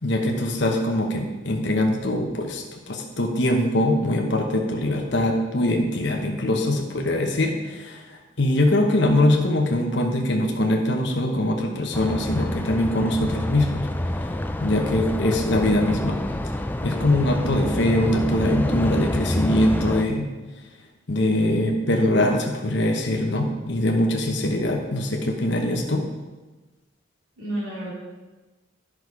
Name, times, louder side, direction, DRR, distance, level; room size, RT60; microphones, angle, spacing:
voice 1, 0.0-14.3 14.6-16.2 16.8-20.3 21.1-26.1, left 1 dB, 60° left, 2 dB, 1.0 m, -23 dB
sound 1, 11.9-20.0, left 1 dB, 10° left, 0.3 m, -28 dB
voice 2, 27.4-27.9, right 1 dB, 90° right, -7 dB, 3.4 m, -33 dB
10.5 x 6.3 x 4.8 m, 1.2 s
head